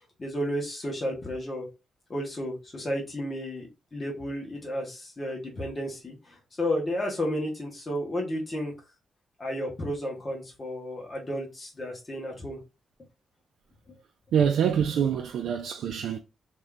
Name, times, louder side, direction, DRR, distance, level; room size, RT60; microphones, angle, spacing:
voice 1, 0.2-1.7 2.1-8.7 9.4-12.6 14.9-15.1, equal, 20° left, 1.1 m, -32 dB
voice 2, 14.3-16.2, right 8 dB, 85° right, 0.3 m, -25 dB
2.6 x 2.5 x 3.3 m
wide cardioid pair, 180°, 0 cm